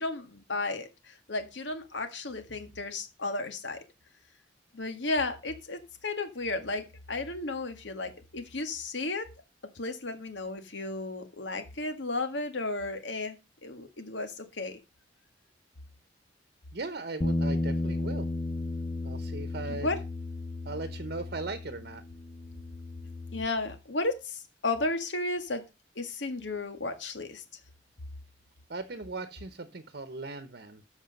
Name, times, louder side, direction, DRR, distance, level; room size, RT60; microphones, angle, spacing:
voice 1, 0.0-3.8 4.7-9.3 9.8-13.4 13.6-14.8 19.7-20.0 23.3-25.6 26.0-27.4, left 2 dB, 80° left, 7 dB, 1.9 m, -33 dB
voice 2, 16.7-18.3 19.0-19.9 20.6-22.0 28.7-30.8, right 3 dB, 60° right, 10 dB, 1.0 m, -38 dB
Bass guitar, 17.2-23.5, left 2 dB, 25° left, 0.5 m, -34 dB
13.5 x 5.1 x 5.3 m, 0.28 s
head